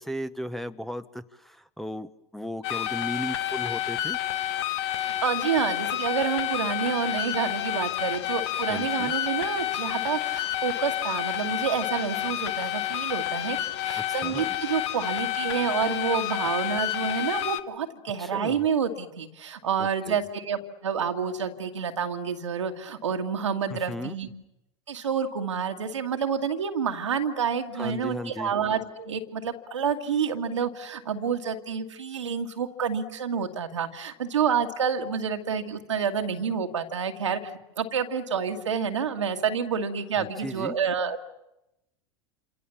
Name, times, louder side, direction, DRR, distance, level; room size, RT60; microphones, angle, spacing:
voice 1, 0.0-4.2 8.7-9.1 14.0-14.5 18.2-18.6 19.8-20.2 23.7-24.2 27.7-28.5 40.2-40.8, equal, ahead, 7 dB, 1.1 m, -36 dB
sound 1, 2.6-17.6, left 13 dB, 70° left, 1.3 m, -29 dB
voice 2, 4.9-24.3 24.9-37.5 37.8-41.3, right 6 dB, 85° right, 5 dB, 2.1 m, -28 dB
28.0 x 27.0 x 7.2 m, 0.90 s
hypercardioid pair, 85°, 15 cm